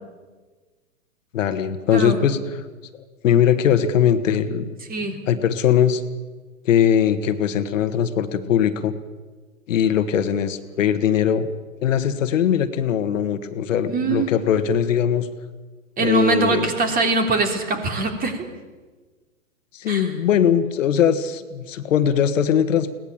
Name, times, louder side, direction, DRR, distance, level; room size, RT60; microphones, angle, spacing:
voice 1, 1.3-2.4 3.2-4.8 5.3-6.0 6.7-8.9 9.7-11.5 11.8-15.3 16.0-16.7 19.7-22.9, left 9 dB, 60° left, 9 dB, 1.8 m, -20 dB
voice 2, 4.9-5.2 13.9-14.3 16.0-18.5 19.9-20.1, right 3 dB, 20° right, 5 dB, 3.3 m, -22 dB
21.5 x 18.0 x 8.9 m, 1.3 s
hypercardioid pair, 120°, 43 cm